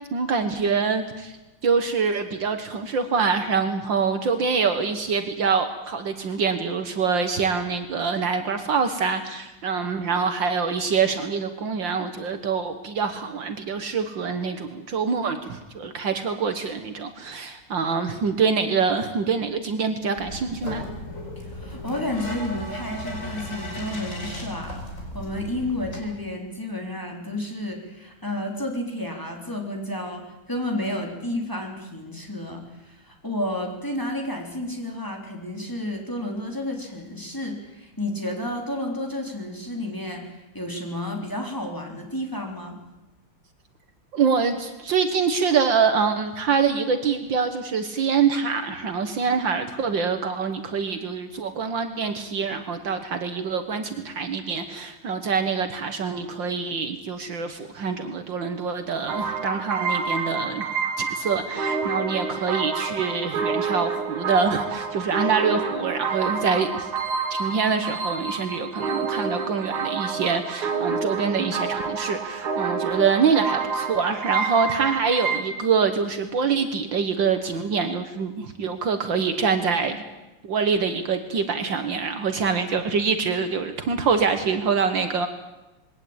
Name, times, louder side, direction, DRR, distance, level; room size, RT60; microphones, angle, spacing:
voice 1, 0.1-1.4 1.6-20.9 44.1-60.7 61.0-66.9 67.3-80.0 80.4-85.3, right 5 dB, 60° right, 8 dB, 2.0 m, -25 dB
sound 1, 20.1-26.0, left 1 dB, 35° left, 5.5 m, -35 dB
voice 2, 21.4-24.8 25.1-42.8, left 1 dB, 10° left, 1 dB, 3.5 m, -31 dB
sound 2, 59.1-75.4, right 5 dB, 75° right, 3.2 m, -28 dB
21.5 x 17.5 x 8.8 m, 1.0 s
omnidirectional pair, 2.3 m